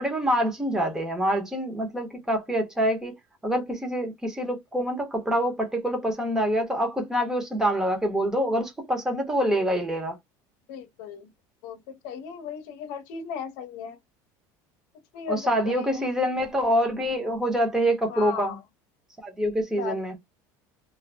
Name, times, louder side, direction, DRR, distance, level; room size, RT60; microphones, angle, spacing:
voice 1, 0.0-3.1 3.4-10.2 15.3-18.6 19.2-20.1, equal, 5° right, 0.8 m, -26 dB
voice 2, 10.7-11.3 11.6-14.0 15.1-16.1 18.1-18.6 19.8-20.0, left 7 dB, 65° left, 0.7 m, -36 dB
2.5 x 2.0 x 3.2 m
cardioid pair, 165°, 9 cm